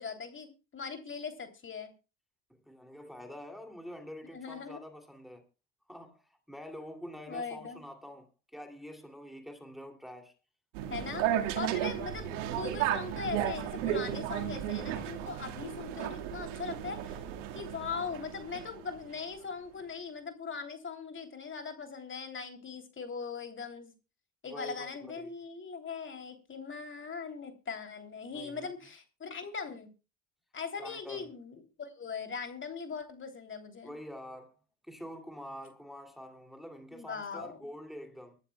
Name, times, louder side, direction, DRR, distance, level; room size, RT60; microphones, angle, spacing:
voice 1, 0.0-1.9 4.2-4.8 7.3-7.8 10.9-11.3 11.6-17.2 17.5-23.9 24.4-29.9 30.5-33.9 36.9-37.6, left 5 dB, 35° left, 3.2 m, -40 dB
voice 2, 2.7-5.4 5.9-10.3 11.1-11.2 17.9-18.1 24.4-24.9 25.2-25.3 28.3-28.7 30.8-31.3 33.8-34.5 34.8-38.4, equal, ahead, 2.7 m, -46 dB
sound 1, 10.7-19.1, right 11 dB, 75° right, 2.0 m, -34 dB
24.0 x 12.0 x 2.3 m
hypercardioid pair, 70°, 37 cm